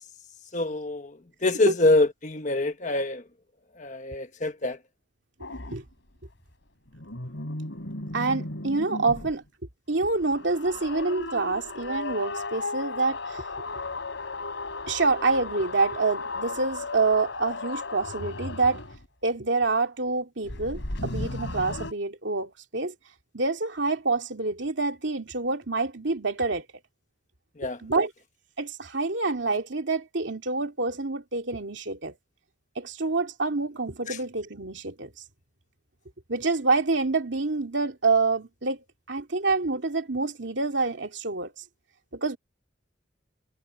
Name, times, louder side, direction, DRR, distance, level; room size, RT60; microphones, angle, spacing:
voice 1, 0.5-1.1 1.4-3.2 3.8-4.8 27.6-27.8 34.1-34.2, left 2 dB, 40° left, 1.3 m, -25 dB
sound 1, 5.4-5.8 6.9-9.3 10.0-19.0 20.4-21.9, left 2 dB, 85° left, 3.3 m, -35 dB
voice 2, 8.1-9.4 9.9-13.5 14.9-18.8 19.2-22.9 23.3-26.7 27.8-28.1 28.6-32.1 32.8-35.1 36.3-41.6 42.1-42.4, right 3 dB, 75° right, 2.4 m, -27 dB
head